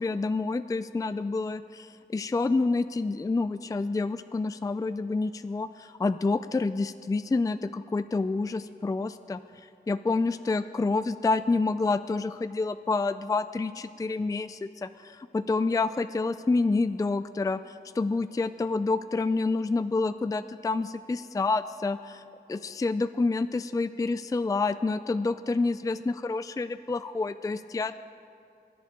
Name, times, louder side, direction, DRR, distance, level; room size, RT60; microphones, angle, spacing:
voice 1, 0.0-22.2 22.5-27.9, left 3 dB, 20° left, 12 dB, 0.3 m, -28 dB
23.5 x 11.0 x 3.7 m, 2.5 s
wide cardioid pair, 100°, 17 cm